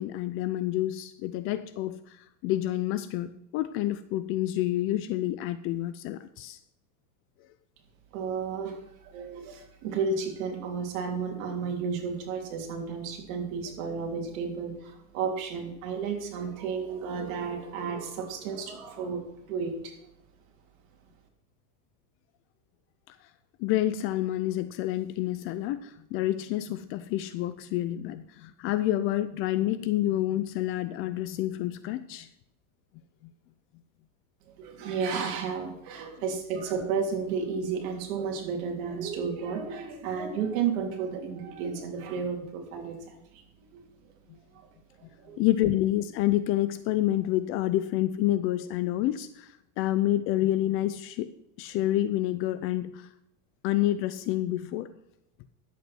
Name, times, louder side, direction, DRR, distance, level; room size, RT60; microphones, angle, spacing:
voice 1, 0.0-6.6 23.1-23.3 23.6-32.3 44.3-44.4 45.4-51.3 51.6-53.1 53.6-54.9, left 14 dB, 30° left, 13 dB, 0.4 m, -28 dB
voice 2, 8.1-19.9 34.6-43.4 43.7-43.8 44.5-44.7 45.1-45.4, right 5 dB, 60° right, 3 dB, 3.3 m, -32 dB
11.0 x 8.2 x 6.0 m, 0.85 s
supercardioid pair, 135°, 45 cm